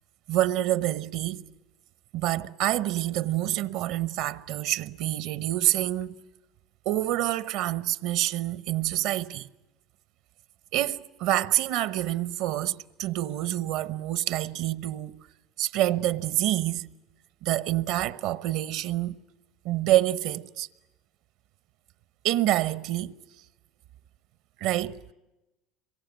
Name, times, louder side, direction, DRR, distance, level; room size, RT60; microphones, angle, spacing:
voice 1, 0.3-1.4 2.1-6.2 6.8-9.5 10.7-15.2 15.6-16.9 17.4-19.2 19.6-20.7 22.2-23.1 24.6-25.0, right 14 dB, 70° right, 1.0 m, -27 dB
26.5 x 23.0 x 9.2 m
supercardioid pair, 110°, 0 cm